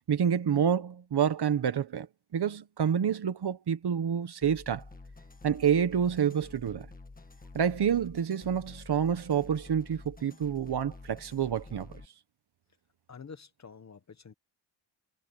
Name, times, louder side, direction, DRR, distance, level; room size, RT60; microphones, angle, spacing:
voice 1, 0.1-2.1 2.3-4.8 5.4-6.9 7.5-11.9, right 8 dB, 60° right, 1.4 m, -28 dB
sound 1, 4.4-12.1, left 3 dB, 20° left, 1.6 m, -49 dB
voice 2, 13.1-14.3, left 5 dB, 35° left, 1.3 m, -48 dB
wide cardioid pair, 165°, 45 cm